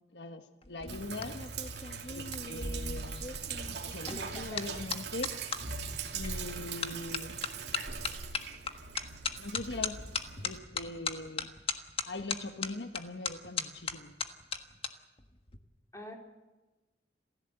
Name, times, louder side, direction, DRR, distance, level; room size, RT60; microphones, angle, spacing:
voice 1, 0.1-1.4 2.1-3.4 3.8-5.4 6.1-7.4 9.4-10.0 10.4-11.6 12.1-14.2, left 2 dB, 80° left, 7 dB, 1.4 m, -41 dB
sound 1, 0.6-5.6 6.2-6.5 6.8-14.9 15.2-15.6, left 5 dB, 35° left, 1.5 m, -38 dB
Sink (filling or washing), 0.9-10.6, right 5 dB, 70° right, 2.8 m, -40 dB
voice 2, 4.1-4.9 15.9-16.1, equal, 20° left, 1 dB, 4.2 m, -45 dB
28.5 x 15.5 x 8.0 m, 1.1 s
head